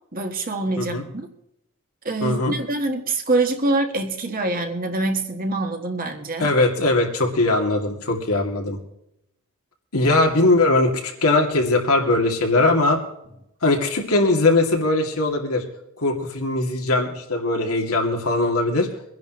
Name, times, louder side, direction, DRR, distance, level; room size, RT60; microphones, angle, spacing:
voice 1, 0.1-1.3 2.0-6.5, right 2 dB, 40° right, 4 dB, 1.6 m, -25 dB
voice 2, 2.2-2.6 6.4-8.8 9.9-13.0 13.6-15.6 16.0-18.9, left 2 dB, 90° left, 1 dB, 2.5 m, -20 dB
24.0 x 10.5 x 3.1 m, 0.81 s
head